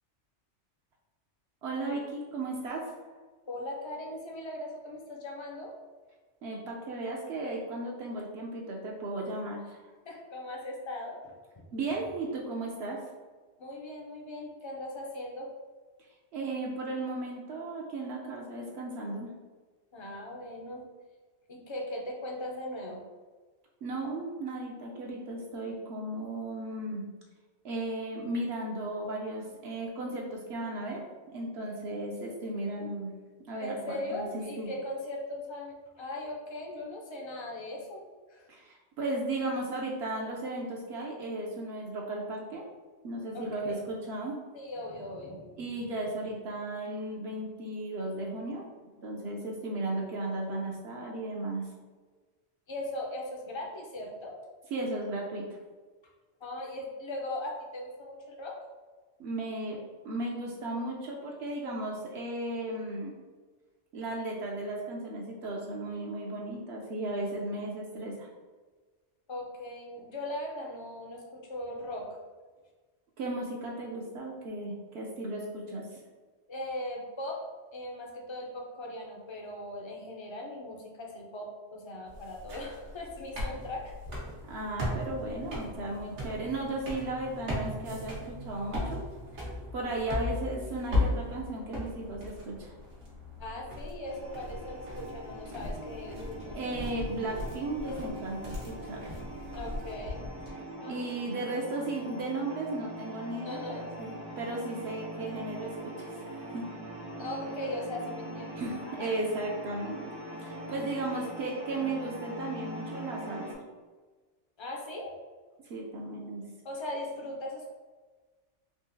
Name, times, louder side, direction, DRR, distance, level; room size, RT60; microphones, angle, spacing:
voice 1, 1.6-2.8 6.4-9.8 11.7-13.0 16.3-19.3 23.8-27.0 27.6-33.1 33.5-34.7 38.5-42.6 43.0-44.4 45.6-48.6 49.0-51.7 54.7-55.4 59.2-59.8 60.0-63.1 63.9-68.3 73.2-75.9 84.5-89.0 89.7-92.7 96.5-99.1 100.9-106.6 108.6-110.0 110.4-113.5 115.7-116.4, right 2 dB, 70° right, -2 dB, 0.8 m, -35 dB
voice 2, 3.5-5.7 10.0-11.3 13.6-15.5 19.9-20.8 21.5-23.0 33.6-38.0 38.3-38.5 43.3-43.8 44.5-45.6 52.7-54.4 56.4-58.6 69.3-72.1 76.5-77.4 77.7-83.9 93.4-96.6 99.5-100.2 100.8-101.0 103.4-103.9 107.2-109.1 114.6-115.1 116.6-117.7, left 1 dB, 45° left, 0 dB, 0.3 m, -39 dB
sound 1, 82.1-100.5, left 2 dB, 85° right, 1.2 m, -37 dB
sound 2, 94.0-113.5, equal, 30° right, 0.5 m, -42 dB
3.6 x 2.7 x 2.6 m, 1.4 s
omnidirectional pair, 1.2 m